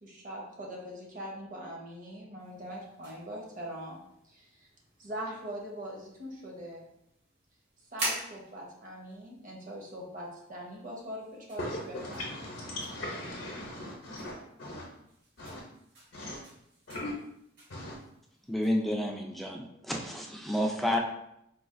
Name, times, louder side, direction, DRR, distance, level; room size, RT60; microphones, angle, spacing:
voice 1, 0.0-4.0 4.2-4.7 5.0-6.8 7.9-12.2, equal, 45° right, -2 dB, 0.9 m, -42 dB
sound 1, 2.4-18.9, right 2 dB, 60° right, 1.1 m, -46 dB
voice 2, 11.6-14.9 15.4-15.6 16.1-16.4 16.9-17.1 17.7-18.0, left 1 dB, 60° left, -3 dB, 0.6 m, -39 dB
voice 3, 18.4-21.0, left 1 dB, ahead, 0 dB, 0.3 m, -30 dB
4.0 x 2.3 x 2.5 m, 0.78 s
head